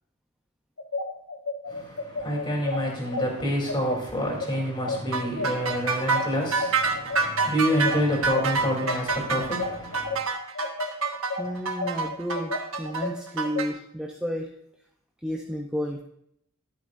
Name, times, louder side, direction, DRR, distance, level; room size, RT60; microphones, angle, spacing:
sound 1, 0.8-10.2 10.5-13.6, left 3 dB, 85° left, 1.1 m, -32 dB
voice 1, 1.7-10.2, equal, 20° left, 3.4 m, -28 dB
sound 2, 5.1-13.7, right 4 dB, 70° right, 1.3 m, -27 dB
voice 2, 11.4-14.5 15.2-16.0, equal, 5° right, 0.7 m, -32 dB
12.0 x 11.5 x 2.6 m
head